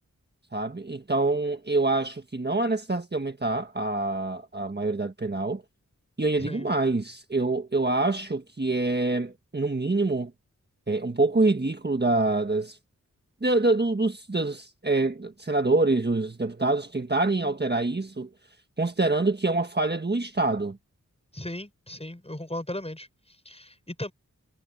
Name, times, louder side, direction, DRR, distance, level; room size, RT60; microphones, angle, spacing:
voice 1, 0.5-5.6 6.2-10.3 10.9-12.8 13.4-18.3 18.8-20.8, right 2 dB, 30° right, 1.5 m, -26 dB
voice 2, 21.3-24.1, left 1 dB, 20° left, 7.4 m, -37 dB
wide cardioid pair, 70°, 32 cm